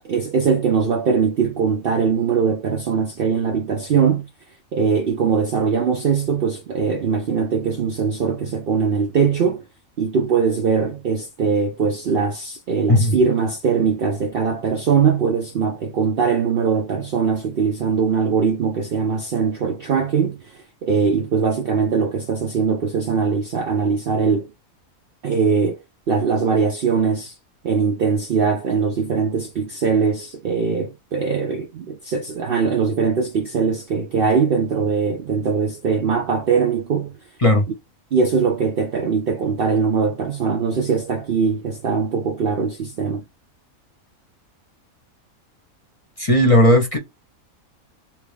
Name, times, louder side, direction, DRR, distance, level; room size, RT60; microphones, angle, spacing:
voice 1, 0.0-4.3 4.7-9.6 10.0-24.5 25.2-25.8 26.1-27.3 27.6-37.2 38.1-43.2, right 5 dB, 60° right, 0.6 m, -21 dB
voice 2, 46.2-47.0, left 1 dB, 30° left, 0.8 m, -15 dB
2.9 x 2.7 x 3.3 m
omnidirectional pair, 1.5 m